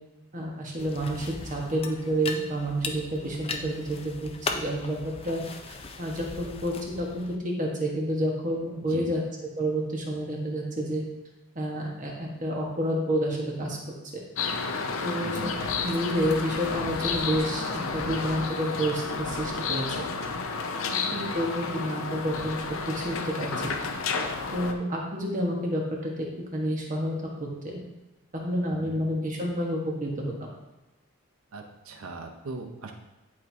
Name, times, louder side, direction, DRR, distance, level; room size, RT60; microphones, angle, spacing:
voice 1, 0.3-5.4 5.7-9.2 9.6-11.0 11.5-13.8 15.0-15.5 15.8-20.1 20.8-23.7 24.5-26.3 26.5-27.8 28.3-30.5, equal, 35° right, -1 dB, 1.3 m, -29 dB
sound 1, 0.8-7.3, left 4 dB, 25° left, 0.5 m, -38 dB
sound 2, 14.4-24.7, left 4 dB, 75° left, 0.6 m, -31 dB
voice 2, 15.2-15.6 21.1-21.3 28.7-29.0 31.5-32.9, right 3 dB, 80° right, 4 dB, 0.8 m, -40 dB
10.5 x 4.5 x 2.7 m, 1.1 s
head